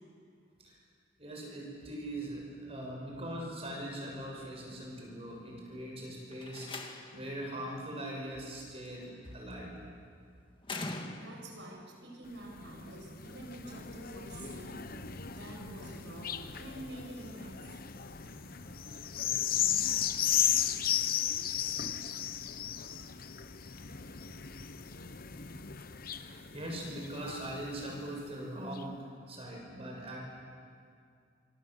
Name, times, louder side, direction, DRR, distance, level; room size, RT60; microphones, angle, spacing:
voice 1, 1.2-9.8 18.2-18.8 19.6-20.7 26.1-30.2, right 1 dB, 30° right, -1 dB, 6.7 m, -42 dB
Slam, 6.3-7.3 8.9-9.3 10.6-11.6, left 2 dB, 25° left, 1.8 m, -41 dB
voice 2, 11.2-14.8 15.4-17.7, right 1 dB, 70° right, 1 dB, 6.8 m, -47 dB
sound 1, 12.3-28.1 28.7-28.8, left 10 dB, 50° left, 1.0 m, -35 dB
26.5 x 22.5 x 8.0 m, 2.3 s
head